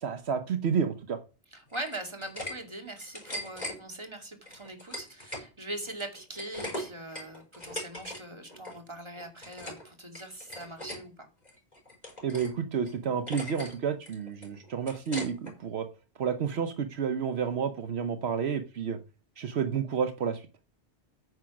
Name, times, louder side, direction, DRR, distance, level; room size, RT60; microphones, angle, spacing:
voice 1, 0.0-1.2 12.2-15.9 16.2-19.0 19.4-20.5, right 7 dB, 75° right, 9 dB, 1.1 m, -30 dB
voice 2, 1.5-11.3, right 1 dB, 25° right, 3 dB, 2.4 m, -41 dB
sound 1, 1.7-2.5 2.9-3.8 4.5-5.5 5.8-8.2 8.5-8.8 9.2-9.8 10.1-11.0 11.4-12.5 12.9-13.0 13.3-13.7 14.1-15.5, left 1 dB, 40° left, 5.1 m, -39 dB
9.5 x 6.2 x 5.9 m, 0.33 s
omnidirectional pair, 1.1 m